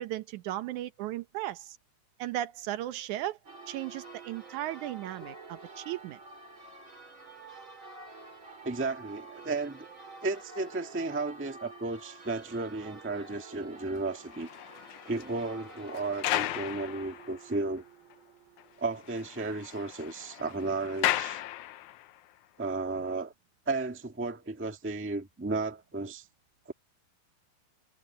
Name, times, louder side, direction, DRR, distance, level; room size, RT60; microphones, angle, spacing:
voice 1, 0.0-1.8 2.2-3.4 3.7-6.2, right 14 dB, 80° right, 2.3 m, -36 dB
Church bell, 3.4-19.2, right 3 dB, 40° right, 5.2 m, -49 dB
voice 2, 8.6-9.9 10.2-14.5 15.0-17.8 18.8-21.4 22.6-23.3 23.7-26.2 26.6-26.7, right 3 dB, 10° right, 0.8 m, -34 dB
sound 1, 14.1-17.8 18.1-18.2 18.6-18.7 18.9-22.2 22.9-23.1, left 14 dB, 80° left, 2.1 m, -36 dB
omnidirectional pair, 3.5 m